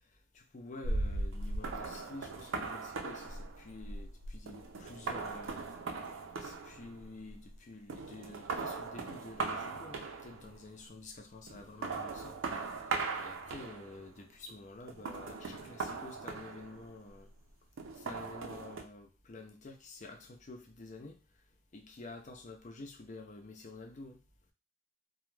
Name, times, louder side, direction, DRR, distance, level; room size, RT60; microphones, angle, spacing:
voice 1, 0.3-5.6 6.4-12.6 13.2-17.3 17.9-21.2 21.7-24.2, left 2 dB, 40° left, 4 dB, 0.5 m, -49 dB
sound 1, 0.8-7.6 7.9-10.6 11.5-14.1 14.9-17.1 17.8-18.8, right 3 dB, 85° right, 0.5 m, -39 dB
2.3 x 2.1 x 3.1 m, 0.29 s
head